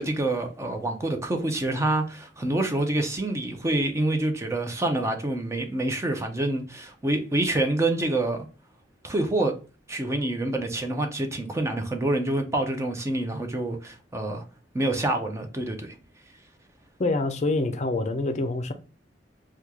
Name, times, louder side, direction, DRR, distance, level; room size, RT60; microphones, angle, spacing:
voice 1, 0.0-8.5 9.0-9.5 9.9-14.4 14.7-15.9, right 2 dB, 15° right, 0.5 m, -27 dB
voice 2, 17.0-18.7, left 2 dB, 40° left, 0.5 m, -26 dB
3.0 x 2.3 x 3.5 m
head